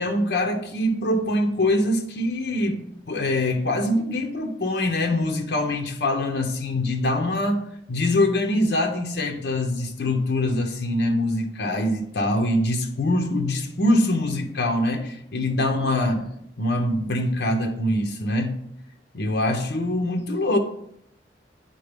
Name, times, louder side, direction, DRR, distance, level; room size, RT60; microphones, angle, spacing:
voice 1, 0.0-18.6 19.1-20.6, left 1 dB, 70° left, 0.8 m, -24 dB
9.2 x 4.0 x 3.5 m
head